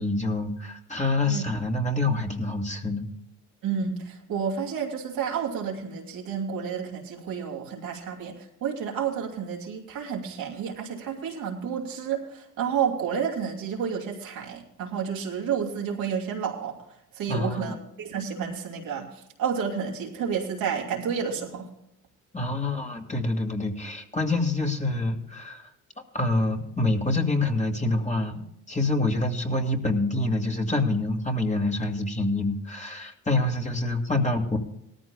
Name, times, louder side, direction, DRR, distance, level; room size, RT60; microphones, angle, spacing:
voice 1, 0.0-3.1 17.3-17.8 22.3-25.7 26.1-28.4 28.7-34.6, left 2 dB, 20° left, 2 dB, 2.2 m, -26 dB
voice 2, 3.6-16.8 17.1-21.7, right 7 dB, 80° right, 0 dB, 2.7 m, -30 dB
18.0 x 14.0 x 2.3 m, 0.80 s
supercardioid pair, 65°, 35 cm